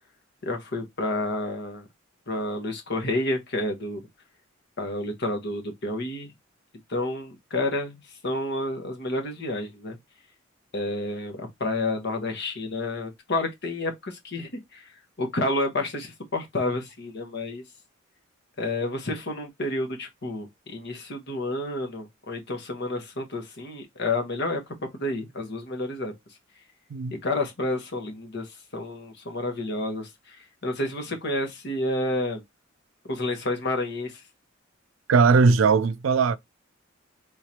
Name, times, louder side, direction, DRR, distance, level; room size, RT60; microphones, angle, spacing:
voice 1, 0.4-1.8 2.3-4.0 4.8-6.3 6.9-10.0 10.7-14.9 15.2-17.6 18.6-26.1 27.2-32.4 33.0-34.2, left 2 dB, 60° left, 1.2 m, -30 dB
voice 2, 35.1-36.4, right 4 dB, 85° right, 0.4 m, -19 dB
3.7 x 3.2 x 2.8 m
head